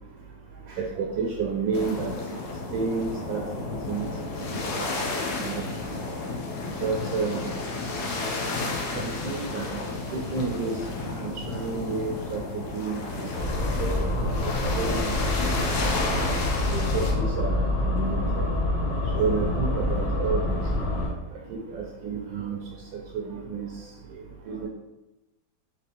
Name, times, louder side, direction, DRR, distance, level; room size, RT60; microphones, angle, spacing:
voice 1, 0.7-2.2 2.7-3.4 3.9-4.1 4.3-4.9 5.4-5.9 6.8-7.5 8.9-9.8 10.1-10.8 11.2-14.1 14.6-15.1 16.7-18.5 19.1-20.6 21.5-22.6 23.1-23.7 24.1-24.2 24.5-24.7, right 4 dB, 75° right, 0 dB, 1.2 m, -30 dB
sound 1, 1.7-17.1, left 3 dB, 65° left, 1.1 m, -32 dB
sound 2, 13.4-21.1, left 1 dB, 90° left, 0.5 m, -26 dB
4.2 x 3.5 x 2.9 m, 1.0 s
omnidirectional pair, 2.1 m